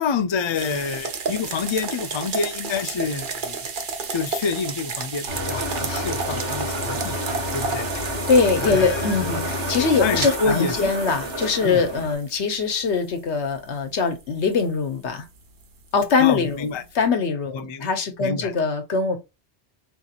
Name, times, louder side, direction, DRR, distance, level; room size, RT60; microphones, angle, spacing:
voice 1, 0.0-3.7 4.1-7.9 8.6-9.3 10.0-10.9 11.6-11.8 16.2-16.8 17.5-17.9 18.2-18.5, left 5 dB, 50° left, 0.3 m, -28 dB
sound 1, 0.5-17.0, right 5 dB, 50° right, 0.8 m, -33 dB
sound 2, 5.3-12.1, equal, 90° right, 1.9 m, -29 dB
voice 2, 8.3-15.2 15.9-16.7 16.9-19.2, left 5 dB, 75° left, 1.2 m, -22 dB
4.4 x 2.8 x 2.4 m
omnidirectional pair, 1.2 m